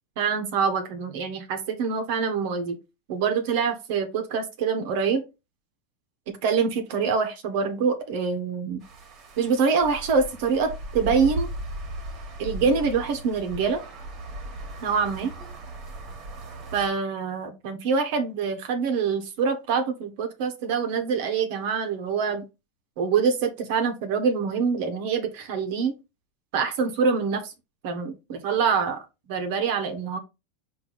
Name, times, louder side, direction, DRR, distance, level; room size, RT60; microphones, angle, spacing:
voice 1, 0.2-2.8 3.1-5.2 6.4-8.8 9.4-11.5 12.4-13.8 14.8-15.3 16.7-22.4 23.0-25.9 26.5-27.5 27.8-29.0 29.3-30.2, right 5 dB, 65° right, 6 dB, 1.0 m, -25 dB
sound 1, 8.8-16.9, right 1 dB, 40° right, 1.5 m, -37 dB
4.5 x 2.7 x 4.0 m, 0.26 s
hypercardioid pair, 115°, 0 cm